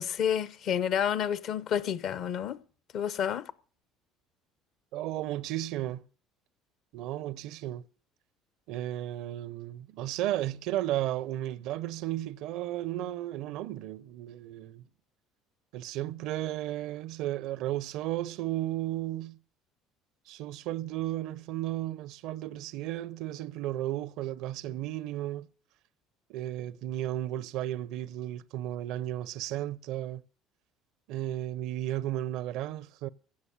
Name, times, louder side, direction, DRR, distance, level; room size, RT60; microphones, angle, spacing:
voice 1, 0.0-2.6 2.9-3.5, left 9 dB, 55° left, 0.8 m, -29 dB
voice 2, 4.9-6.0 6.9-7.8 8.7-14.8 15.7-19.4 20.3-25.5 26.3-30.2 31.1-33.1, right 14 dB, 65° right, 0.5 m, -34 dB
16.0 x 6.5 x 8.5 m
hypercardioid pair, 65°, 0 cm